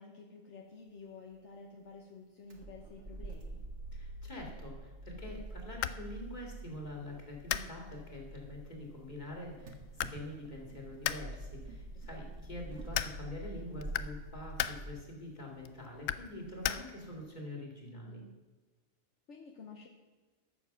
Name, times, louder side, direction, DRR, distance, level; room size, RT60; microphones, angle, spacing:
voice 1, 0.0-3.6 12.1-12.3 17.8-18.3 19.3-19.9, left 4 dB, 65° left, 0 dB, 1.4 m, -51 dB
sound 1, 2.5-14.9, right 2 dB, 65° right, 1.7 m, -47 dB
voice 2, 3.9-18.2, left 1 dB, 35° left, -1 dB, 2.6 m, -45 dB
sound 2, 5.2-17.3, left 11 dB, 80° left, 0.9 m, -41 dB
14.0 x 7.1 x 6.0 m, 1.3 s
omnidirectional pair, 1.3 m